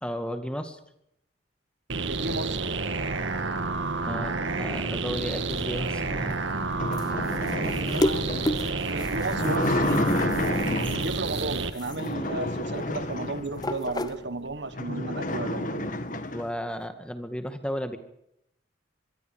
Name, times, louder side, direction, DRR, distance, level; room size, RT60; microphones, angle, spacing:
voice 1, 0.0-0.8 4.1-6.4 16.3-18.0, equal, 5° left, 8 dB, 2.0 m, -34 dB
sound 1, 1.9-11.7, right 3 dB, 90° right, 1.9 m, -29 dB
voice 2, 2.1-2.7 7.5-10.3 11.0-16.0, right 2 dB, 65° right, 13 dB, 1.4 m, -34 dB
sound 2, 5.1-14.7, left 1 dB, 20° left, 0.9 m, -35 dB
sound 3, 6.1-11.3 11.8-13.9 14.3-14.4 14.7-16.5, left 1 dB, 45° left, 1.9 m, -30 dB
26.0 x 22.5 x 5.1 m, 0.76 s
head